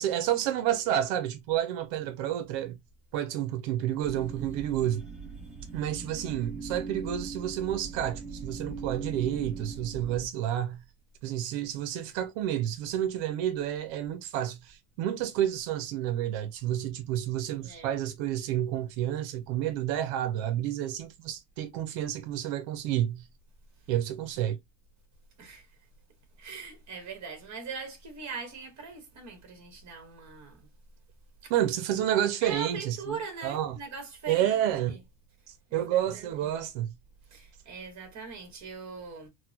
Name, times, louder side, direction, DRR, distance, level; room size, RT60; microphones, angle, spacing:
voice 1, 0.0-2.8 3.1-5.1 5.7-10.8 11.2-23.3 23.9-24.6 31.5-33.0 33.4-33.8 34.3-35.0 35.5-36.9, right 11 dB, 90° right, 0.7 m, -30 dB
sound 1, 4.0-10.3, right 4 dB, 15° right, 1.3 m, -40 dB
voice 2, 17.6-18.0 25.4-25.7 26.4-30.7 31.4-31.5 32.4-35.0 35.7-36.6 37.3-39.3, right 5 dB, 40° right, 1.7 m, -41 dB
4.0 x 2.2 x 2.7 m
cardioid pair, 155°, 43 cm